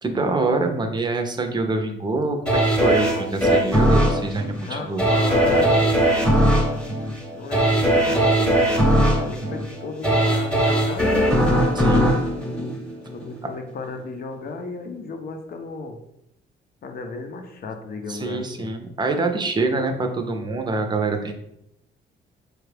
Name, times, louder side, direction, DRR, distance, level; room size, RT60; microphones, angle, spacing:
voice 1, 0.0-5.0 11.7-12.2 18.1-21.3, right 3 dB, 20° right, 5 dB, 0.6 m, -25 dB
sound 1, 2.5-13.4 13.8-13.9, right 1 dB, 5° left, 0.9 m, -20 dB
voice 2, 4.6-5.8 7.3-11.2 13.1-16.0 16.8-18.7, left 4 dB, 50° left, 5 dB, 0.6 m, -34 dB
4.5 x 2.4 x 3.3 m, 0.79 s
cardioid pair, 90°, 20 cm